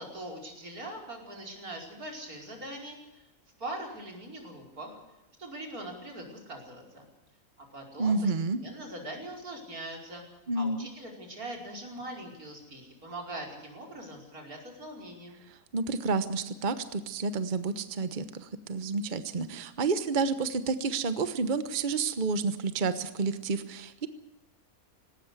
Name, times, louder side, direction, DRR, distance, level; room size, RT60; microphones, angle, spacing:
voice 1, 0.0-3.3 3.6-5.0 5.4-7.0 7.6-8.3 8.6-15.4, right 1 dB, 90° right, 1 dB, 5.5 m, -42 dB
voice 2, 8.0-8.6 10.5-10.9 15.7-24.1, right 4 dB, 35° right, 11 dB, 1.2 m, -30 dB
19.0 x 18.0 x 8.2 m, 0.98 s
omnidirectional pair, 1.5 m